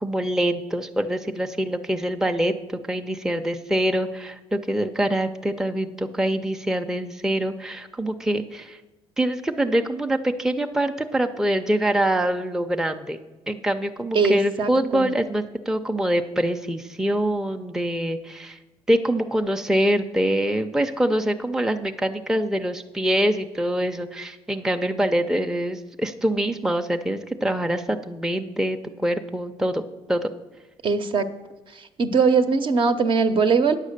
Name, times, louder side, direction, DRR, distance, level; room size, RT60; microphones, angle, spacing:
voice 1, 0.0-8.8 9.2-13.2 13.5-18.6 18.9-29.8 30.1-30.3, right 1 dB, 5° right, 6 dB, 0.5 m, -24 dB
voice 2, 14.1-15.1 30.8-31.3 32.0-33.8, right 5 dB, 50° right, 8 dB, 0.8 m, -20 dB
9.2 x 7.3 x 6.6 m, 1.2 s
cardioid pair, 90°, 11 cm